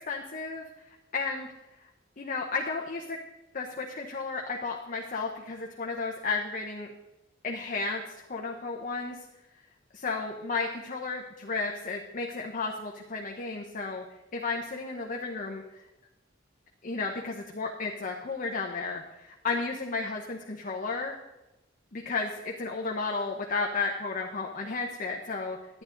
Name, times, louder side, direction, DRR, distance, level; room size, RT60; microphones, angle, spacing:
voice 1, 0.1-0.6 1.1-1.5 2.2-3.2 3.5-6.9 7.4-8.0 8.3-9.2 9.9-14.0 14.3-15.6 16.8-21.2 21.9-25.8, left 4 dB, 45° left, 1 dB, 0.9 m, -33 dB
11.5 x 9.8 x 3.9 m, 0.98 s
head